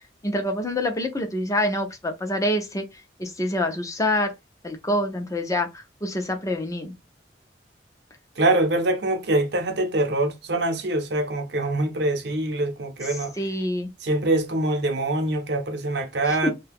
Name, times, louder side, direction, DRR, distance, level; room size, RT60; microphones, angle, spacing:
voice 1, 0.2-2.8 3.2-4.3 4.6-6.9 13.4-13.9 16.3-16.5, left 1 dB, 20° left, 0.6 m, -26 dB
voice 2, 8.4-13.3 14.0-16.5, right 2 dB, 65° right, 0.8 m, -24 dB
2.7 x 2.2 x 3.4 m
head